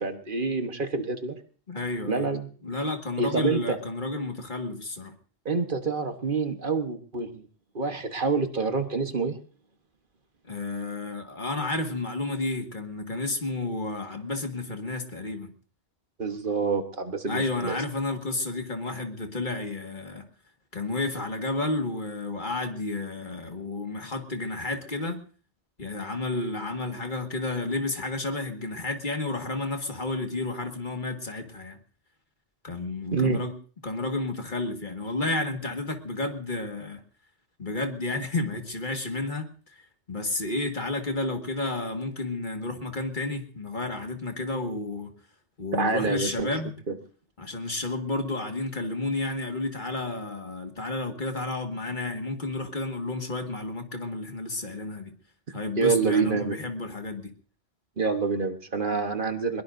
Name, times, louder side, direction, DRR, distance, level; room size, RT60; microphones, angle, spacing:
voice 1, 0.0-1.4 2.1-2.5 3.2-3.8 5.4-7.5 7.7-9.4 16.2-17.8 33.1-33.4 45.7-46.5 46.9-47.0 55.5-56.6 58.0-59.6, right 4 dB, 50° right, 7 dB, 1.4 m, -27 dB
voice 2, 1.7-2.3 2.6-5.1 10.5-15.5 17.3-20.3 20.7-25.2 25.8-31.8 32.6-33.5 33.8-37.0 37.6-45.1 45.6-46.7 47.4-55.1 55.5-57.3, left 2 dB, 50° left, 4 dB, 1.9 m, -31 dB
22.0 x 21.5 x 2.6 m, 0.42 s
omnidirectional pair, 1.1 m